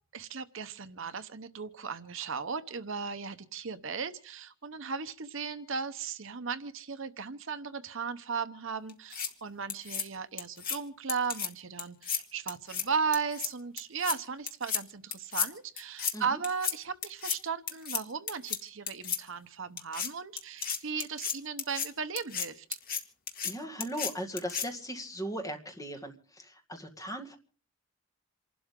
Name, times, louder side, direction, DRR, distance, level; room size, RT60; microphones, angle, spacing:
voice 1, 0.1-22.7, right 5 dB, 60° right, 11 dB, 0.8 m, -36 dB
sound 1, 8.9-9.3 9.7-10.0 10.4-10.8 11.1-11.5 11.8-12.2 12.5-12.8 13.1-13.5 13.8-14.2 14.5-14.8 15.1-15.5 15.8-16.1 16.4-16.7 17.0-17.4 17.7-18.0 18.3-18.6 18.9-19.2 19.8-20.1 20.4-21.9 22.2-22.5 22.7-23.0 23.3-23.5 23.8-24.1 24.4-24.7, left 7 dB, 45° left, 1.8 m, -33 dB
voice 2, 23.4-27.4, equal, 15° left, 3 dB, 1.9 m, -38 dB
28.0 x 12.0 x 3.7 m, 0.41 s
head